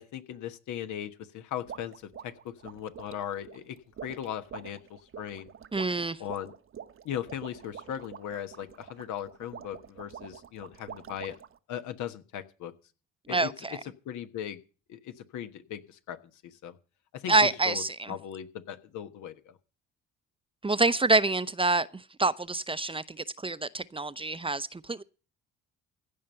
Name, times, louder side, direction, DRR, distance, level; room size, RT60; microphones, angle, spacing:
voice 1, 0.0-2.0 2.2-5.5 6.2-6.5 7.0-11.4 11.7-12.7 13.3-13.8 14.0-14.6 14.9-16.8 17.1-19.5, left 10 dB, 70° left, 1.3 m, -38 dB
sound 1, 1.7-11.6, right 8 dB, 45° right, 1.0 m, -46 dB
voice 2, 5.7-6.2 13.3-13.8 17.3-18.1 20.6-25.0, right 3 dB, 15° right, 0.7 m, -27 dB
15.5 x 5.6 x 8.8 m
hypercardioid pair, 55°, 31 cm